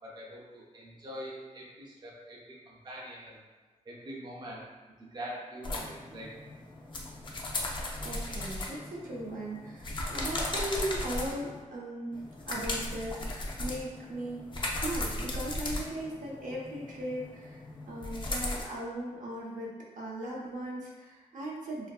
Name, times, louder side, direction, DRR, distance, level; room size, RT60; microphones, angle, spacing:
voice 1, 0.0-3.4 3.9-4.7 5.0-6.3, equal, 35° right, -4 dB, 0.5 m, -44 dB
sound 1, 5.6-11.6 12.1-18.6, left 1 dB, 35° left, 0.4 m, -37 dB
voice 2, 8.0-21.9, right 1 dB, 80° right, -3 dB, 0.6 m, -38 dB
2.6 x 2.5 x 2.3 m, 1.4 s
wide cardioid pair, 145°, 13 cm